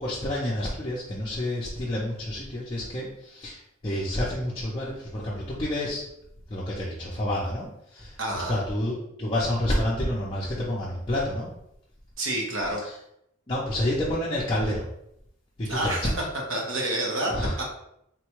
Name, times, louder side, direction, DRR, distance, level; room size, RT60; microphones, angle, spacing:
voice 1, 0.0-3.6 3.8-6.0 6.5-7.7 7.9-8.1 8.5-11.5 13.5-14.8 15.6-16.1 17.3-17.5, left 1 dB, 25° left, -7 dB, 0.5 m, -28 dB
voice 2, 8.2-8.5 12.2-12.8 15.7-16.2 16.5-17.3 17.6-17.7, right 1 dB, 65° right, 0 dB, 0.8 m, -28 dB
3.7 x 2.2 x 3.0 m, 0.76 s
head